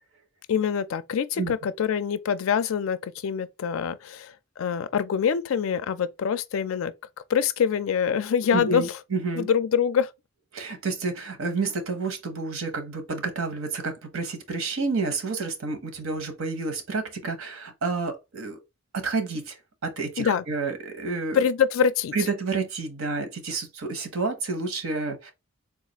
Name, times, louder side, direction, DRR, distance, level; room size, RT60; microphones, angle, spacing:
voice 1, 0.5-6.9 7.3-8.8 9.3-10.1 20.2-20.4 21.3-22.1, left 7 dB, 75° left, 0.4 m, -25 dB
voice 2, 8.5-9.5 10.5-18.6 18.9-21.4 22.1-25.3, right 4 dB, 75° right, 0.8 m, -30 dB
3.8 x 2.4 x 2.9 m
head